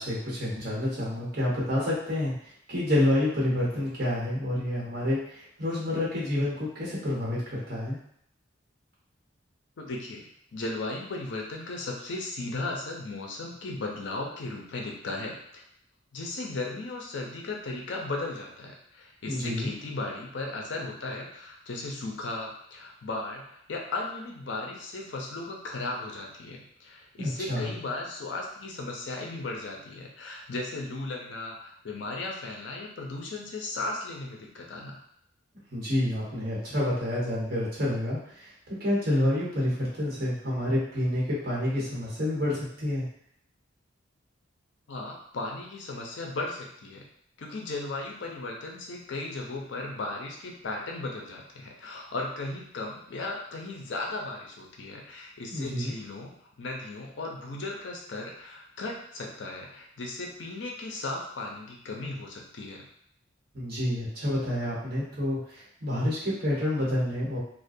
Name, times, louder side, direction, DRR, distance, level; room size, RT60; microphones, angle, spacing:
voice 1, 0.0-2.3 2.7-8.0 19.3-19.7 27.2-27.7 35.7-38.5 38.8-43.0 55.5-55.9 63.5-67.4, left 1 dB, 50° right, -6 dB, 1.0 m, -28 dB
voice 2, 9.8-10.3 10.5-15.6 16.1-35.0 44.9-47.0 47.4-62.8, left 2 dB, 70° left, -1 dB, 0.5 m, -36 dB
2.4 x 2.1 x 2.5 m, 0.69 s
head